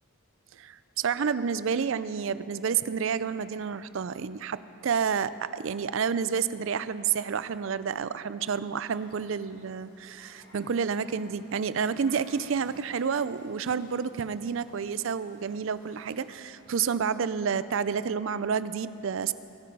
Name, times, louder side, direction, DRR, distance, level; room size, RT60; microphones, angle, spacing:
voice 1, 0.5-19.3, right 6 dB, 60° right, 15 dB, 0.4 m, -29 dB
Human group actions, 8.8-16.6, left 1 dB, 75° left, 4.2 m, -56 dB
23.0 x 8.6 x 5.4 m, 2.9 s
head